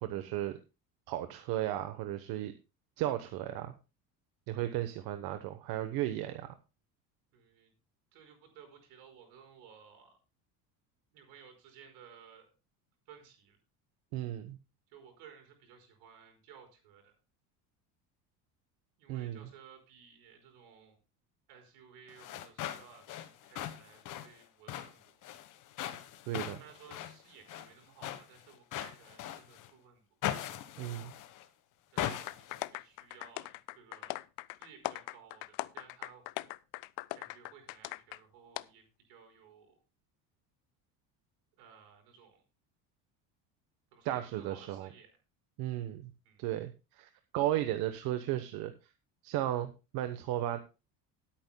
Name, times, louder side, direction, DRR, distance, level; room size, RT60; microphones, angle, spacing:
voice 1, 0.0-0.6 1.1-2.5 3.0-3.7 4.5-6.5 14.1-14.6 19.1-19.4 26.3-26.6 30.8-31.1 44.0-44.9 45.6-46.1 46.4-48.7 49.2-50.6, right 13 dB, 65° right, 9 dB, 1.0 m, -35 dB
voice 2, 7.3-7.7 8.1-10.2 11.1-12.5 13.0-13.6 14.9-17.1 19.0-21.0 21.5-25.3 26.5-30.0 31.9-34.2 34.6-36.3 37.1-39.8 41.6-42.4 43.9-45.2 46.2-46.5, right 7 dB, 80° right, 4 dB, 5.1 m, -57 dB
sound 1, 22.1-29.7 30.2-31.5 32.0-32.7, left 11 dB, 55° left, 1.2 m, -40 dB
sound 2, 32.3-38.2 38.6-38.7, left 21 dB, 80° left, 0.6 m, -40 dB
19.0 x 8.8 x 2.2 m, 0.30 s
cardioid pair, 140°, 38 cm